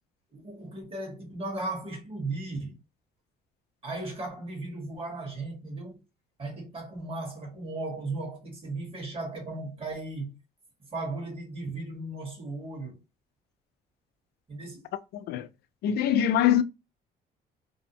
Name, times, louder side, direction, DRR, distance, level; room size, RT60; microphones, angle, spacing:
voice 1, 0.3-2.8 3.8-6.0 6.4-10.3 10.9-13.0 14.5-14.9, right 2 dB, 35° right, 1.3 m, -36 dB
voice 2, 15.1-15.5 15.8-16.6, left 10 dB, 70° left, 0.4 m, -23 dB
2.6 x 2.0 x 2.7 m
cardioid pair, 110°, 17 cm